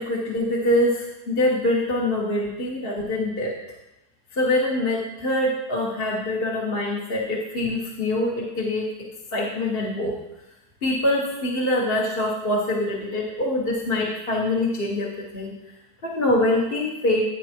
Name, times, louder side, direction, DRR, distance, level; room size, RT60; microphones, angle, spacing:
voice 1, 0.0-3.5 4.3-8.8 9.3-10.1 10.8-15.1 15.3-15.5 16.0-17.2, left 1 dB, 35° left, -4 dB, 1.6 m, -24 dB
13.0 x 9.2 x 3.0 m, 0.95 s
omnidirectional pair, 1.9 m